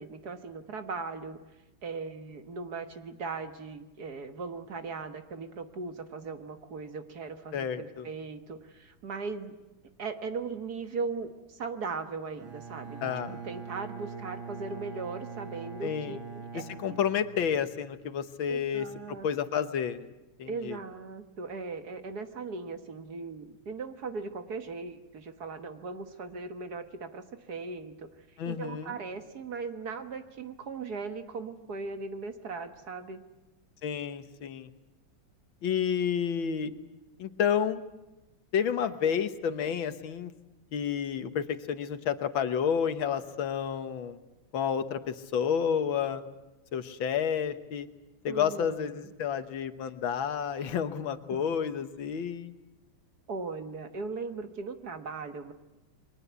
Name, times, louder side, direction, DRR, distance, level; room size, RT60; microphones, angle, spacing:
voice 1, 0.0-1.4 1.8-9.6 10.0-13.1 13.4-17.0 18.5-19.6 20.5-28.1 28.5-33.2 48.3-49.1 51.3-51.4 53.3-55.5, right 4 dB, 55° right, 8 dB, 1.9 m, -38 dB
voice 2, 7.5-8.1 13.0-13.4 15.8-16.2 16.5-20.0 20.4-20.8 28.4-28.9 33.8-34.7 35.6-36.7 37.2-37.8 38.5-40.3 40.7-44.2 44.5-46.2 46.7-47.9 48.2-52.5, left 8 dB, 80° left, 10 dB, 1.9 m, -30 dB
Bowed string instrument, 12.4-17.9, right 5 dB, 80° right, 2.6 m, -43 dB
29.5 x 22.5 x 8.2 m, 1.0 s
omnidirectional pair, 2.1 m